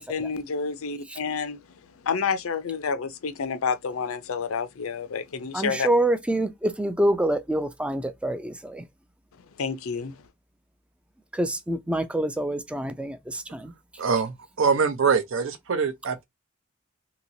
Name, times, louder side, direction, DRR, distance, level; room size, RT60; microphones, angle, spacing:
voice 1, 0.0-1.6 2.0-5.9 9.6-10.2, left 5 dB, 80° left, 0.5 m, -29 dB
voice 2, 5.5-8.8 11.3-13.7, right 1 dB, 5° right, 0.3 m, -26 dB
voice 3, 14.0-16.2, right 5 dB, 65° right, 0.6 m, -24 dB
2.9 x 2.8 x 2.6 m
head